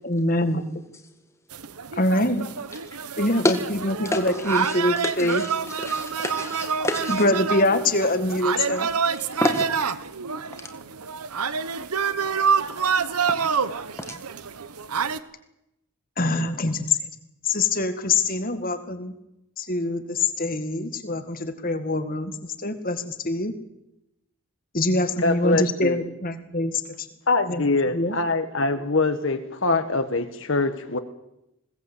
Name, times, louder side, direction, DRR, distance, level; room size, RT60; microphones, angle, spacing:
voice 1, 0.0-0.6 2.0-2.5 3.2-5.4 7.1-8.9 16.2-17.0 17.5-19.1 19.6-23.5 24.7-26.7 27.0-27.1 27.5-27.6 27.9-28.2, left 2 dB, 40° left, 9 dB, 1.9 m, -24 dB
sound 1, 1.5-15.2, right 6 dB, 85° right, 1.0 m, -27 dB
voice 2, 5.0-5.5 5.8-7.2 9.4-9.7, left 1 dB, 10° left, 5 dB, 1.7 m, -26 dB
voice 3, 25.2-26.0 27.3-31.0, left 3 dB, 60° left, 8 dB, 1.5 m, -24 dB
21.0 x 17.5 x 8.3 m, 0.87 s
head